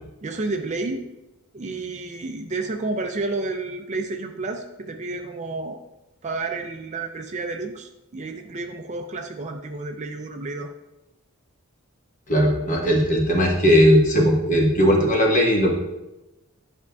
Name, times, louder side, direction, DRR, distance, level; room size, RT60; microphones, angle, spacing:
voice 1, 0.2-1.1 1.5-5.8 6.2-10.7, right 3 dB, 30° right, 5 dB, 0.4 m, -30 dB
voice 2, 12.3-15.7, equal, 35° left, 0 dB, 1.2 m, -18 dB
9.6 x 5.2 x 2.3 m, 0.97 s
head